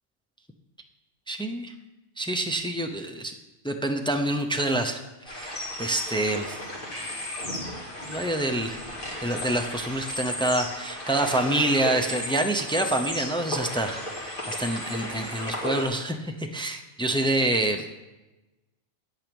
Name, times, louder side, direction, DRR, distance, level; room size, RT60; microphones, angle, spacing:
voice 1, 1.3-1.7 2.2-3.3 3.6-5.0 5.3-6.6 8.1-8.8 9.2-14.0 14.5-17.9, right 1 dB, 5° left, 5 dB, 0.4 m, -27 dB
sound 1, 5.3-15.8, left 1 dB, 45° left, 2.2 m, -34 dB
9.8 x 8.9 x 5.2 m, 1.1 s
omnidirectional pair, 1.3 m